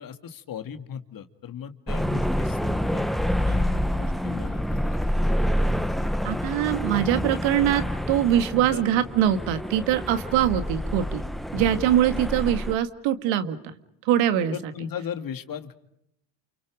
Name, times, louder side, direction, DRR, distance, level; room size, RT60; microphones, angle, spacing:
voice 1, 0.0-3.1 3.5-5.0 8.7-9.0 11.5-11.6 14.5-15.7, left 8 dB, 45° left, 9 dB, 2.2 m, -38 dB
sound 1, 1.9-12.8, equal, ahead, 1.2 m, -27 dB
voice 2, 6.2-11.2 11.5-13.6 14.1-14.5, right 11 dB, 70° right, 9 dB, 2.2 m, -23 dB
29.0 x 29.0 x 5.2 m, 0.77 s
supercardioid pair, 80°, 48 cm